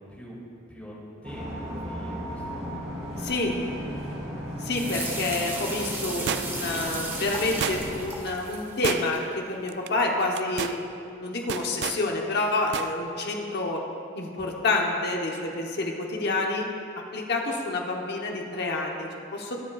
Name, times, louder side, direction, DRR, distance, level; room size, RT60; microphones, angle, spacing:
voice 1, 1.2-3.7, left 1 dB, 5° left, -6 dB, 2.3 m, -45 dB
sound 1, 1.2-8.0, equal, 30° right, 2.6 m, -36 dB
voice 2, 3.2-3.6 4.6-13.8 14.1-16.7 17.1-19.6, left 2 dB, 50° left, 0 dB, 1.0 m, -28 dB
sound 2, 4.7-9.2, right 2 dB, 10° right, 1.0 m, -35 dB
sound 3, 6.3-6.8 7.6-8.1 8.8-9.4 9.7-9.9 10.3-10.8 11.5-12.0 12.7-12.9 13.2-13.3, right 8 dB, 55° right, 0.3 m, -31 dB
21.0 x 7.2 x 2.4 m, 2.5 s
head